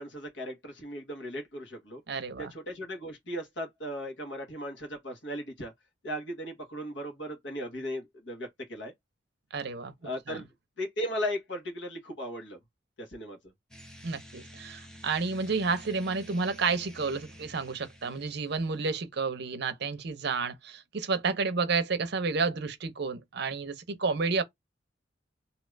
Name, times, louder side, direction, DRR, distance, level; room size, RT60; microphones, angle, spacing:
voice 1, 0.0-2.0 2.4-5.7 6.0-8.9 10.0-10.5 10.8-12.6 13.0-13.4, equal, 70° left, 1.3 m, -37 dB
voice 2, 2.1-2.5 9.5-9.9 10.3-10.4 14.0-24.4, right 4 dB, 65° right, 0.6 m, -30 dB
sound 1, 13.7-18.8, equal, 5° left, 0.5 m, -50 dB
2.8 x 2.4 x 3.2 m
head